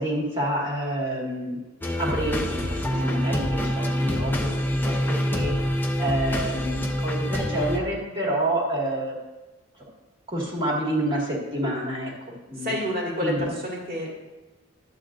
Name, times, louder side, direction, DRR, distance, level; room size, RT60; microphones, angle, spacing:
voice 1, 0.0-1.6 2.0-5.5 5.8-9.2 10.3-12.1 12.5-12.7 13.2-13.4, right 1 dB, 25° right, -3 dB, 2.0 m, -28 dB
sound 1, 1.8-7.8, equal, 10° left, 0.6 m, -26 dB
voice 2, 12.6-14.1, equal, 40° right, -4 dB, 2.4 m, -29 dB
11.5 x 8.8 x 2.6 m, 1.1 s
head